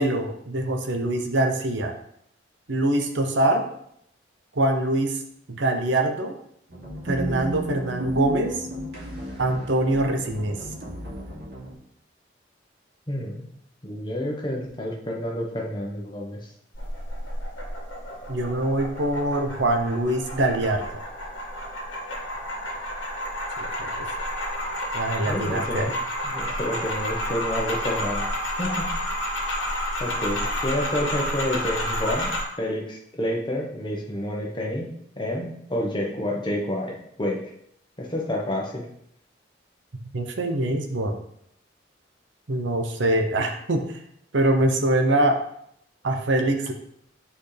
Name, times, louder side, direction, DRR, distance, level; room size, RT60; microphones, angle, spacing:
voice 1, 0.0-1.9 2.7-3.6 4.5-5.2 5.5-6.3 7.0-8.7 9.4-10.6 18.3-20.8 23.6-23.9 24.9-25.9 40.1-41.1 42.5-44.0 44.3-45.4 46.0-46.7, right 1 dB, 75° right, 4 dB, 0.9 m, -24 dB
sound 1, 6.7-11.7, right 1 dB, 60° right, 2.8 m, -34 dB
voice 2, 13.1-13.4 13.8-16.4 25.2-25.9 26.2-28.2 28.6-28.9 30.0-32.3 32.6-34.9 35.2-37.4 38.0-38.9, left 1 dB, 25° left, -1 dB, 1.1 m, -29 dB
sound 2, 16.7-32.4, equal, 85° left, 1.7 m, -30 dB
8.0 x 4.3 x 3.4 m, 0.72 s
head